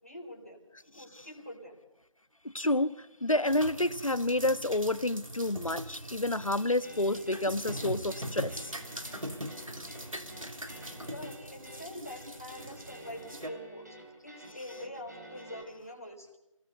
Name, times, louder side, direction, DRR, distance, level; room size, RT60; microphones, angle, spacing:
voice 1, 0.0-0.6 0.9-1.8 11.0-14.0 14.2-16.4, left 1 dB, 25° left, 0 dB, 4.0 m, -45 dB
voice 2, 2.5-8.7, left 1 dB, 80° left, 15 dB, 1.2 m, -29 dB
sound 1, 3.5-13.5, equal, 90° right, 3.1 m, -41 dB
sound 2, 6.8-15.6, right 1 dB, 30° right, 4.4 m, -51 dB
28.0 x 19.5 x 6.9 m, 0.93 s
figure-of-eight pair, 180°, 17 cm